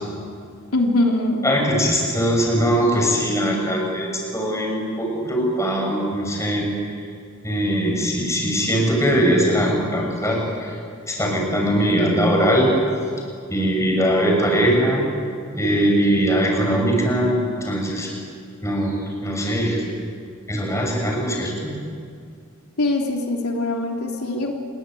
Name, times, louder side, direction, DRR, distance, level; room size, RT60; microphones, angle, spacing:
voice 1, 0.7-1.5 22.8-24.5, left 2 dB, 90° left, 1 dB, 3.4 m, -22 dB
voice 2, 1.4-6.7 7.4-10.7 11.1-12.8 13.5-15.0 15.5-18.1 18.6-18.9 19.2-19.8 20.5-21.7, equal, 15° left, 0 dB, 6.5 m, -21 dB
28.5 x 21.0 x 9.3 m, 2.3 s
head